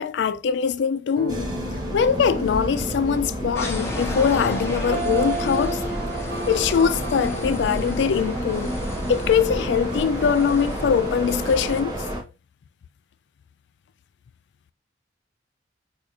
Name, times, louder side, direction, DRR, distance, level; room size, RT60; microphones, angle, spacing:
voice 1, 0.0-1.5 1.9-5.8 6.5-8.8 9.1-12.0, left 7 dB, 70° left, 0.3 m, -22 dB
sound 1, 1.2-7.5, right 2 dB, 70° right, 0.8 m, -33 dB
sound 2, 1.3-12.2, equal, 20° right, 0.7 m, -30 dB
sound 3, 3.6-11.8, left 1 dB, 15° left, 0.7 m, -34 dB
4.8 x 2.4 x 2.8 m
head